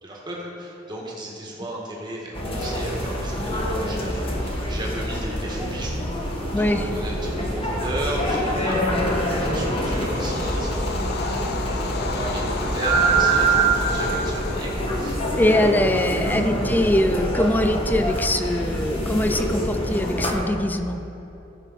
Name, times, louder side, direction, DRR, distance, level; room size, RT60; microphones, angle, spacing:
voice 1, 0.0-16.7, right 1 dB, 25° right, -4 dB, 1.8 m, -35 dB
sound 1, 2.3-20.3, right 1 dB, 30° left, 1.4 m, -25 dB
voice 2, 6.5-6.8 15.4-21.0, left 1 dB, 10° left, 8 dB, 0.4 m, -22 dB
Bird vocalization bird call bird song / Train, 9.1-20.3, left 3 dB, 55° left, 0.6 m, -35 dB
14.5 x 5.9 x 4.2 m, 3.0 s
head